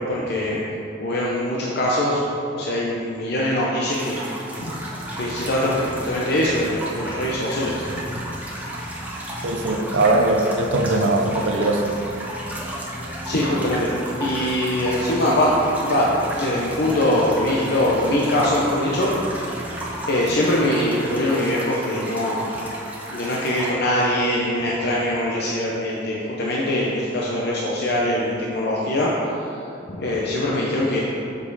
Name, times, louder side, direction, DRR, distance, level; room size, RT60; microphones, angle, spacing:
voice 1, 0.1-0.7 1.0-2.2 2.5-4.3 4.6-4.7 5.2-8.0 13.2-13.9 14.2-16.1 16.4-19.1 20.1-22.5 23.1-29.1 29.9-31.0, left 1 dB, 60° left, -4 dB, 0.8 m, -22 dB
sound 1, 3.9-23.7, right 1 dB, 10° right, 1.0 m, -34 dB
sound 2, 4.9-21.4, equal, 40° right, 1.2 m, -39 dB
voice 2, 9.4-11.9, right 2 dB, 80° right, 3 dB, 0.6 m, -20 dB
6.8 x 5.4 x 4.8 m, 2.8 s
head